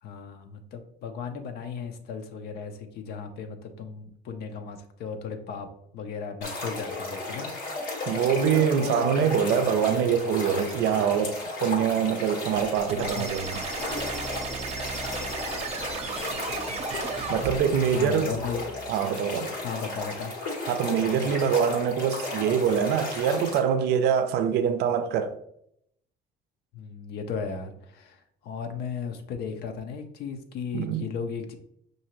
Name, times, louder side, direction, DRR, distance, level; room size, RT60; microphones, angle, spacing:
voice 1, 0.0-5.7 5.9-7.5 7.8-8.0 8.4-9.0 13.0-13.2 17.9-18.6 19.5-20.4 20.9-21.4 26.7-31.5, left 6 dB, 70° left, 0.6 m, -36 dB
sound 1, 6.4-23.6, left 2 dB, 85° left, 1.4 m, -35 dB
voice 2, 8.1-13.6 17.3-18.3 18.9-19.5 20.7-25.4 30.7-31.1, right 8 dB, 75° right, 0.4 m, -24 dB
sound 2, 12.6-17.6, right 5 dB, 40° right, 0.7 m, -35 dB
sound 3, 13.9-18.9, right 2 dB, 10° left, 0.6 m, -44 dB
5.7 x 2.6 x 3.0 m
cardioid pair, 110°, 17 cm